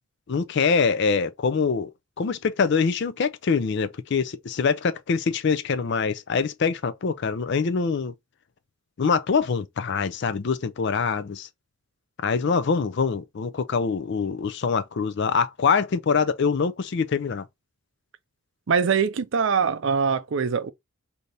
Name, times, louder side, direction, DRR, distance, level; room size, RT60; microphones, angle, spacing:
voice 1, 0.3-1.9 2.2-8.1 9.0-11.5 12.2-17.4, left 5 dB, 50° left, 0.4 m, -24 dB
voice 2, 18.7-20.7, right 6 dB, 55° right, 0.4 m, -23 dB
3.3 x 2.8 x 3.9 m
head